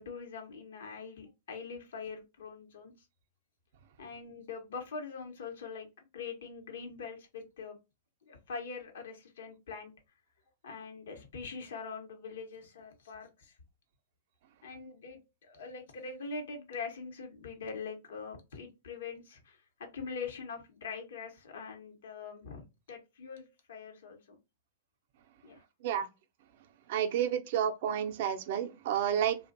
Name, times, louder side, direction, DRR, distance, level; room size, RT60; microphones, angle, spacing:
voice 1, 0.0-2.9 4.0-5.9 6.1-7.8 8.3-9.9 10.6-13.5 14.6-22.6 22.9-24.4 25.4-25.6, left 5 dB, 70° left, 0.8 m, -43 dB
voice 2, 26.9-29.4, right 9 dB, 60° right, 0.4 m, -30 dB
2.5 x 2.1 x 2.5 m
hypercardioid pair, 110°, 0 cm